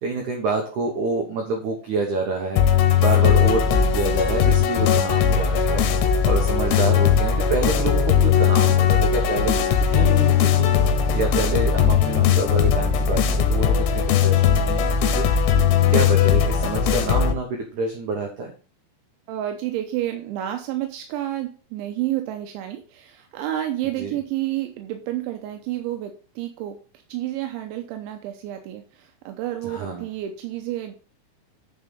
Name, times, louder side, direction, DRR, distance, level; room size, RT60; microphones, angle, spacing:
voice 1, 0.0-5.8 6.2-10.7 11.1-15.2 15.9-18.5 24.0-24.2 29.6-30.1, right 3 dB, 70° right, 2 dB, 1.9 m, -27 dB
sound 1, 2.6-17.3, left 8 dB, 80° left, 3.0 m, -19 dB
voice 2, 19.3-26.8 27.1-31.0, right 13 dB, 85° right, 5 dB, 3.2 m, -30 dB
9.4 x 5.3 x 5.3 m, 0.38 s
omnidirectional pair, 5.2 m